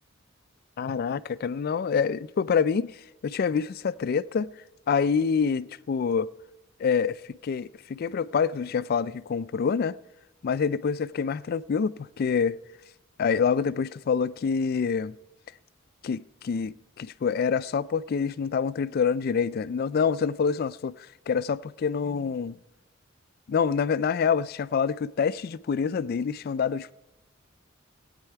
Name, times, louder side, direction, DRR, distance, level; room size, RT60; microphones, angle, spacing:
voice 1, 0.8-2.9 3.2-4.5 4.9-6.3 6.8-10.0 10.4-12.6 13.2-15.1 16.0-20.9 21.3-22.5 23.5-26.9, left 6 dB, 50° left, 0.3 m, -26 dB
17.0 x 9.0 x 4.6 m
head